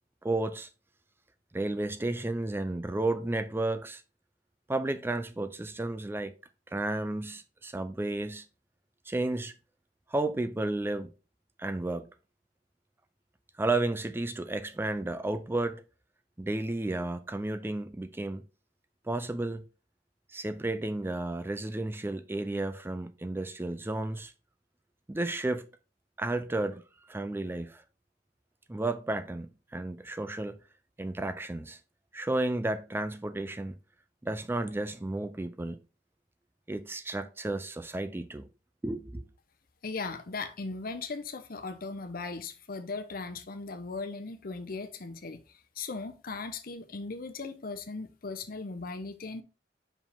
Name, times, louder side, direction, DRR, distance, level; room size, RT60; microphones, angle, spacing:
voice 1, 0.2-0.7 1.5-4.0 4.7-6.3 6.7-8.5 9.1-9.5 10.1-11.1 11.6-12.1 13.6-15.8 16.4-18.4 19.0-19.6 20.3-24.3 25.1-25.7 26.2-26.8 27.1-27.8 28.7-30.6 31.0-31.8 32.1-33.7 34.2-35.8 36.7-38.5 38.8-39.2, right 2 dB, 15° right, 0.4 m, -32 dB
voice 2, 39.8-49.4, left 3 dB, 55° left, 0.8 m, -38 dB
5.5 x 4.9 x 3.5 m
head